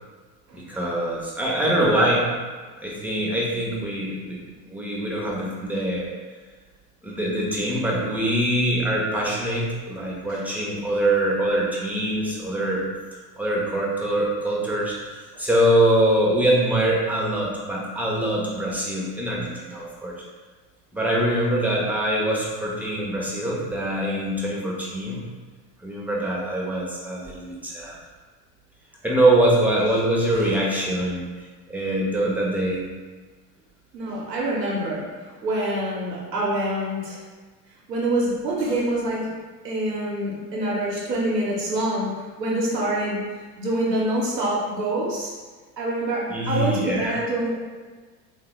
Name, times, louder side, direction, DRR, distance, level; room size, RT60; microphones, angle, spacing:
voice 1, 0.5-2.3 2.8-4.4 4.7-6.1 7.0-12.8 13.4-20.1 20.9-25.3 25.8-28.0 29.0-31.3 31.7-32.8 46.3-47.2, right 1 dB, 5° right, -4 dB, 0.5 m, -23 dB
voice 2, 33.9-37.2 37.9-39.3 39.6-45.3 45.8-47.7, right 1 dB, 90° right, -4 dB, 0.7 m, -26 dB
3.3 x 2.2 x 3.0 m, 1.4 s
hypercardioid pair, 75°, 48 cm